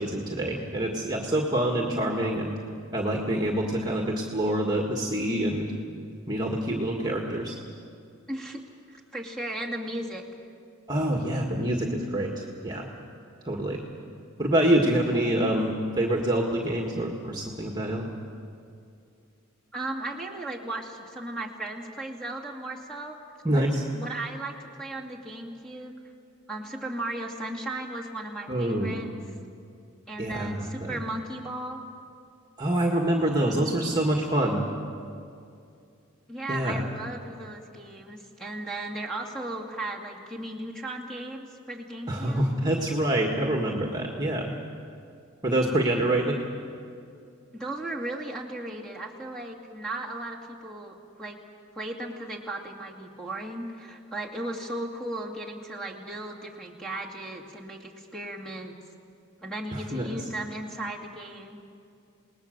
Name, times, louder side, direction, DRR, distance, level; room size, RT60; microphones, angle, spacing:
voice 1, 0.0-2.6 2.9-5.7 6.3-7.6 10.9-12.9 13.5-13.8 14.4-18.1 23.4-23.8 28.5-29.1 30.2-31.0 32.6-34.7 36.5-36.8 42.1-44.5 45.4-46.4 59.7-60.1, right 1 dB, 20° right, 0 dB, 1.8 m, -26 dB
voice 2, 8.3-8.6 8.9-10.2 19.7-23.2 23.5-23.6 23.9-25.9 26.5-29.1 30.1-31.8 36.3-42.4 47.5-51.4 51.8-58.7 59.4-61.6, right 2 dB, 5° left, -1 dB, 2.4 m, -36 dB
28.5 x 19.5 x 6.7 m, 2.5 s
head